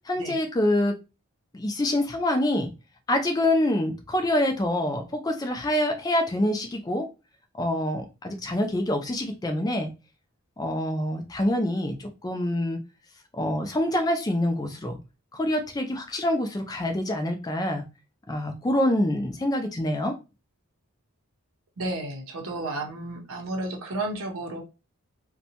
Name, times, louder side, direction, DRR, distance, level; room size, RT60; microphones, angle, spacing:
voice 1, 0.1-1.0 1.5-2.7 3.1-7.1 7.6-9.9 10.6-12.8 13.4-15.0 15.3-17.8 18.3-20.2, left 1 dB, 15° left, 5 dB, 0.3 m, -26 dB
voice 2, 21.8-24.6, right 2 dB, 80° right, 2 dB, 0.6 m, -32 dB
2.6 x 2.1 x 2.8 m, 0.29 s
head